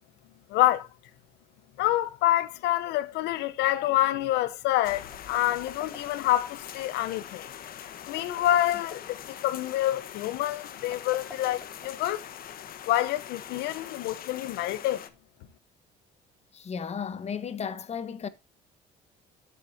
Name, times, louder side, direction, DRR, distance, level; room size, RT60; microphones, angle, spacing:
voice 1, 0.5-0.9 1.8-7.5 8.1-12.3 12.8-15.0, left 14 dB, 90° left, 1.1 m, -27 dB
sound 1, 4.8-15.1, left 10 dB, 60° left, 1.4 m, -43 dB
sound 2, 5.1-6.5 8.1-9.2 10.8-12.4, left 2 dB, 10° left, 5.6 m, -47 dB
voice 2, 16.5-18.3, left 7 dB, 40° left, 1.4 m, -34 dB
14.5 x 8.3 x 2.8 m
cardioid pair, 110°, 17 cm